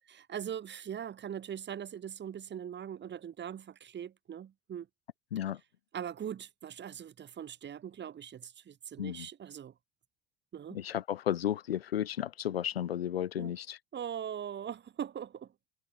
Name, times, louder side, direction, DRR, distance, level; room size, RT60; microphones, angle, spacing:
voice 1, 0.1-4.9 5.9-9.7 10.5-10.8 13.4-13.5 13.9-15.5, right 9 dB, 35° right, 6.1 m, -41 dB
voice 2, 10.7-13.8, left 11 dB, 80° left, 2.8 m, -33 dB
figure-of-eight pair, 70°, 30 cm